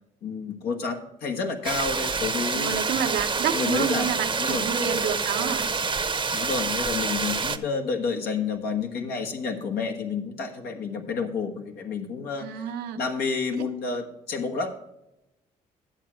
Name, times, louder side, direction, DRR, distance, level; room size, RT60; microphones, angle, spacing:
voice 1, 0.2-2.8 3.5-4.1 4.4-4.7 6.3-12.6 13.0-14.7, left 5 dB, 80° left, 3 dB, 1.3 m, -30 dB
sound 1, 1.6-7.6, right 4 dB, 30° right, 0.8 m, -27 dB
voice 2, 2.5-5.7 12.4-13.0 13.6-13.7, right 7 dB, 85° right, 4 dB, 1.0 m, -29 dB
10.5 x 7.6 x 4.4 m, 0.89 s
supercardioid pair, 60°, 16 cm